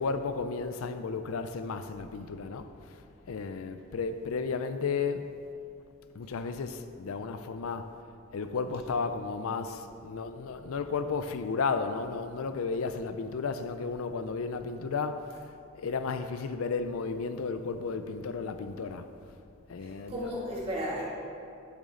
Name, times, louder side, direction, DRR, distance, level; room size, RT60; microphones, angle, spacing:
voice 1, 0.0-2.7 3.3-5.3 6.2-7.9 8.3-15.4 15.7-19.1 19.7-20.3, left 4 dB, 75° left, 0.4 m, -33 dB
voice 2, 19.8-21.0, equal, 25° right, 2.2 m, -35 dB
9.6 x 8.1 x 3.8 m
head